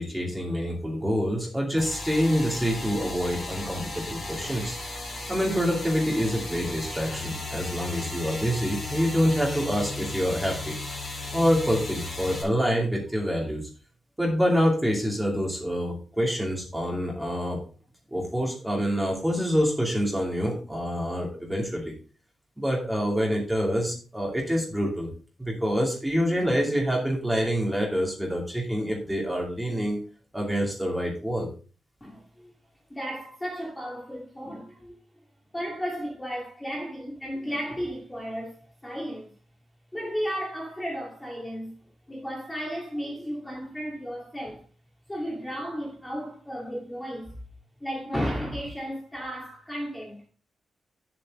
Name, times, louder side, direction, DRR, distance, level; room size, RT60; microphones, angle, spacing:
voice 1, 0.0-4.8 5.3-10.7 11.3-13.7 14.2-17.6 18.1-21.9 22.6-25.1 25.4-30.0 30.3-31.5, equal, 5° right, 2.6 m, -26 dB
sound 1, 1.8-12.4, left 2 dB, 25° left, 3.5 m, -35 dB
voice 2, 32.0-32.5 32.9-35.0 35.5-39.3 39.9-41.7 42.1-44.6 45.1-47.3 47.8-50.2, equal, 10° left, 2.3 m, -34 dB
9.3 x 7.6 x 3.7 m
wide cardioid pair, 170°, 0 cm